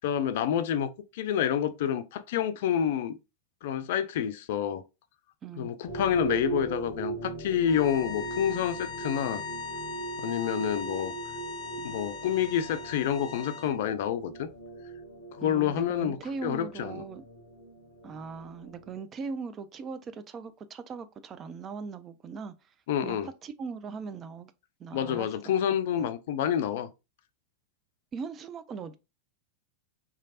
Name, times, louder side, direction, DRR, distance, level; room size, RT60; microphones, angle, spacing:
voice 1, 0.0-3.2 3.6-4.8 5.6-9.4 10.2-11.1 11.8-14.5 15.4-16.2 16.4-17.0 22.9-23.3 24.9-26.9, left 9 dB, 55° left, 0.3 m, -28 dB
voice 2, 5.4-5.7 15.4-17.2 18.0-22.5 23.0-24.5 24.8-25.5 26.0-26.1 28.1-29.0, right 5 dB, 25° right, 0.3 m, -39 dB
sound 1, 5.9-19.0, right 4 dB, 85° right, 0.9 m, -40 dB
sound 2, 7.6-13.8, left 5 dB, 30° left, 0.9 m, -40 dB
3.1 x 2.4 x 2.6 m
figure-of-eight pair, 90°, 0 cm